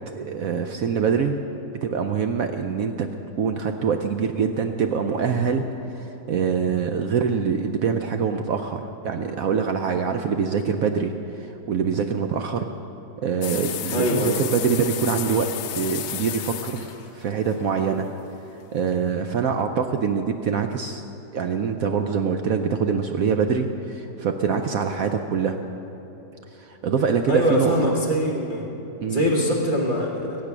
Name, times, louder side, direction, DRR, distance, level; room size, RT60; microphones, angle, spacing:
voice 1, 0.1-1.4 1.8-3.1 3.4-12.7 13.2-18.1 18.7-21.0 21.3-25.6 26.5-27.9 29.0-29.3, right 6 dB, 65° right, 6 dB, 0.9 m, -24 dB
sound 1, 13.4-18.3, left 11 dB, 70° left, 0.8 m, -33 dB
voice 2, 13.9-14.4 27.3-28.7 29.1-30.4, equal, 30° right, -5 dB, 1.3 m, -23 dB
22.5 x 8.2 x 6.0 m, 3.0 s
omnidirectional pair, 2.0 m